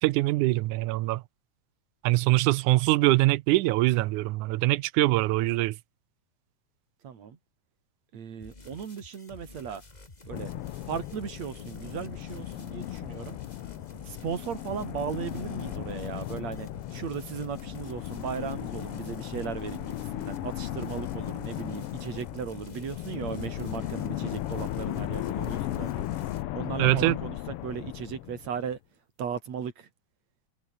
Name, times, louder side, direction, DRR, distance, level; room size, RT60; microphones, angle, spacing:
voice 1, 0.0-1.2 2.0-5.8 26.8-27.2, right 18 dB, 80° right, 2.1 m, -23 dB
voice 2, 7.0-7.4 8.1-9.8 10.3-10.5 10.9-13.4 14.0-26.1 26.5-27.4 27.6-28.8 29.2-29.9, right 7 dB, 60° right, 3.7 m, -36 dB
sound 1, 8.4-26.4, left 2 dB, 15° left, 2.0 m, -50 dB
sound 2, 10.3-28.7, left 14 dB, 85° left, 1.2 m, -36 dB
omnidirectional pair, 3.6 m